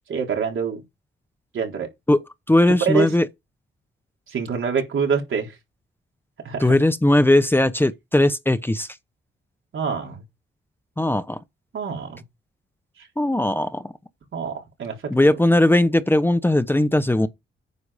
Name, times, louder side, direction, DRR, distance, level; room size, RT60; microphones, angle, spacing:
voice 1, 0.1-0.8 1.5-1.9 2.9-3.1 4.3-5.5 6.4-6.7 9.7-10.2 11.7-12.2 13.0-13.1 14.3-15.1, right 6 dB, 70° right, 4.0 m, -26 dB
voice 2, 2.5-3.3 6.6-8.9 11.0-11.4 13.2-13.9 15.1-17.3, left 1 dB, 10° left, 0.9 m, -18 dB
9.6 x 6.9 x 5.1 m
cardioid pair, 100°, 21 cm